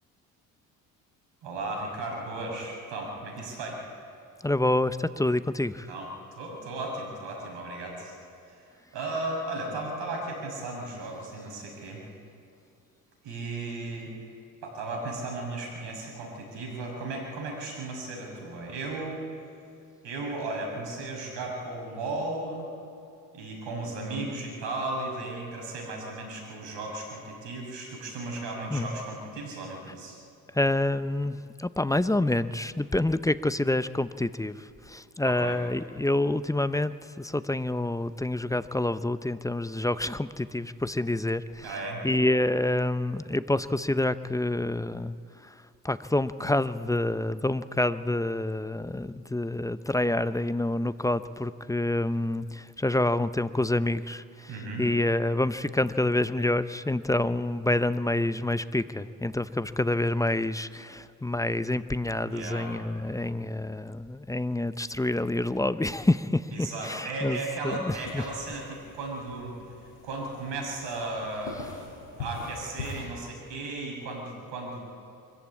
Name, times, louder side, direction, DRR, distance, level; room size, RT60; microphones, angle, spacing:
voice 1, 1.4-3.8 5.9-8.1 8.5-8.6 8.9-12.0 13.2-14.1 14.6-19.2 20.0-22.7 23.3-30.2 35.2-35.6 41.6-42.0 54.5-54.8 62.3-62.7 66.5-69.5 70.0-74.8, right 2 dB, 70° right, 1 dB, 6.4 m, -35 dB
voice 2, 4.4-5.9 28.7-28.9 30.5-45.1 45.4-45.5 45.8-54.5 54.8-68.2, left 1 dB, 10° left, 14 dB, 0.7 m, -27 dB
sound 1, 68.0-73.1, left 4 dB, 80° left, 6.1 m, -43 dB
23.5 x 14.5 x 8.6 m, 2.4 s
hypercardioid pair, 60°, 44 cm